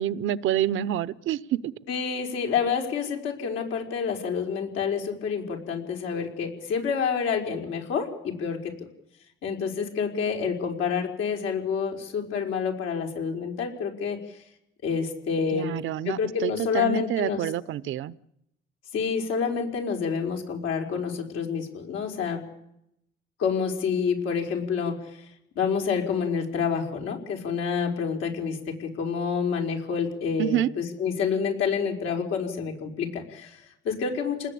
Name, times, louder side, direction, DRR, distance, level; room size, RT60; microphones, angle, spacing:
voice 1, 0.0-1.7 15.5-18.1 30.4-30.7, right 11 dB, 80° right, 18 dB, 0.9 m, -27 dB
voice 2, 1.9-8.7 9.4-14.2 14.8-15.7 16.1-17.4 18.9-22.4 23.4-24.9 25.6-34.5, left 6 dB, 90° left, 2 dB, 5.4 m, -28 dB
28.5 x 20.0 x 8.6 m, 0.80 s
cardioid pair, 90°, 20 cm